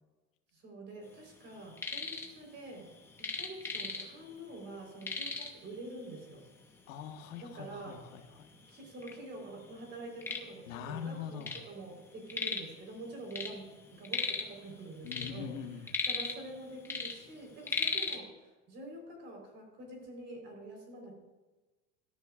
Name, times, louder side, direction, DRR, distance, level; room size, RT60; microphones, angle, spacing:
voice 1, 0.5-2.9 3.2-6.5 7.4-8.0 8.7-15.5 16.0-21.2, right 2 dB, 30° right, 1 dB, 4.0 m, -46 dB
sound 1, 1.5-2.3 2.6-4.3 4.6-4.7 5.0-5.7 6.5-6.6 7.1-7.2 7.9-8.0 8.3-9.1 9.6-11.7 11.9-12.8 13.1-14.6 14.9-16.6 16.8-18.2, left 4 dB, 5° left, 0.7 m, -36 dB
voice 2, 6.9-8.5 10.7-11.5 15.0-15.9, left 7 dB, 80° left, 5 dB, 1.4 m, -42 dB
17.5 x 13.5 x 2.4 m, 1.2 s
supercardioid pair, 170°, 39 cm